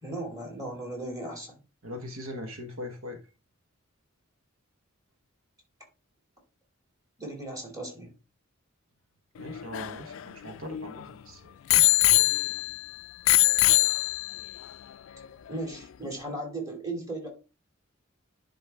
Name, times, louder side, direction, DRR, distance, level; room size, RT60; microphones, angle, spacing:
voice 1, 0.0-1.6 7.2-8.1 15.5-17.3, right 2 dB, 15° right, 2.6 m, -36 dB
voice 2, 1.8-3.2 9.4-12.3, left 1 dB, 75° right, 1.2 m, -41 dB
Bicycle bell, 9.4-11.0 11.7-12.8 13.3-14.5 15.2-15.3, left 20 dB, 65° left, 0.3 m, -23 dB
10.0 x 4.1 x 3.5 m
head